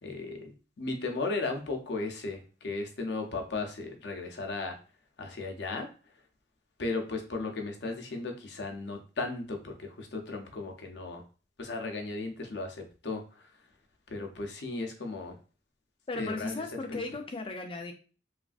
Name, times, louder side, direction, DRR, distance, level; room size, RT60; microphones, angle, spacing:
voice 1, 0.0-4.8 5.2-5.9 6.8-11.2 11.6-13.5 14.1-15.3 16.1-17.0, left 3 dB, 70° left, 0.6 m, -36 dB
voice 2, 16.1-17.9, left 3 dB, 30° left, 0.4 m, -36 dB
3.1 x 2.4 x 2.4 m
head